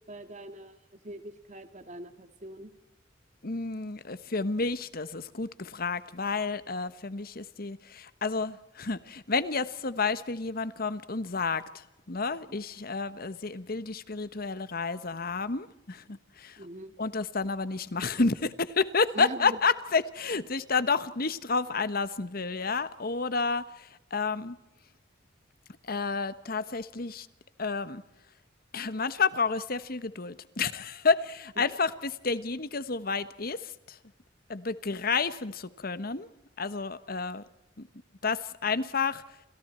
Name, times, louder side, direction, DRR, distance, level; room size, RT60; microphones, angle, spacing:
voice 1, 0.1-0.8 1.0-2.7 12.5-12.6 16.6-16.9 19.1-19.6, right 1 dB, 40° right, 9 dB, 1.9 m, -42 dB
voice 2, 3.4-16.7 17.0-24.6 25.8-27.3 27.6-28.0 28.7-34.0 34.5-36.3 36.6-37.4 37.8-37.9 38.2-39.4, left 4 dB, 55° left, 14 dB, 1.2 m, -30 dB
30.0 x 27.5 x 4.4 m, 0.93 s
head